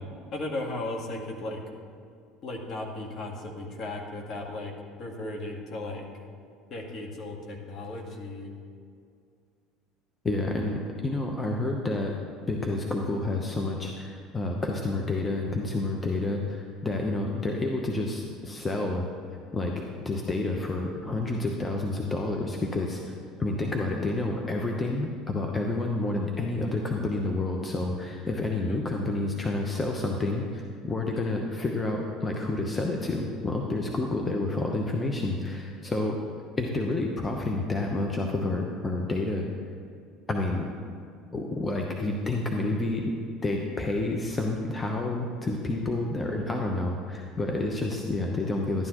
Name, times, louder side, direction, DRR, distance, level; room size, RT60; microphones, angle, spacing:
voice 1, 0.3-1.6 2.4-4.7 5.0-6.1 6.7-8.5 28.6-28.8, left 2 dB, 45° left, 1 dB, 1.6 m, -36 dB
voice 2, 10.2-12.2 12.5-19.1 19.5-36.2 36.6-39.4 40.3-40.7 41.3-43.1 43.4-48.9, left 2 dB, 20° left, 1 dB, 0.9 m, -29 dB
12.0 x 9.5 x 3.0 m, 2.3 s
hypercardioid pair, 80°, 0 cm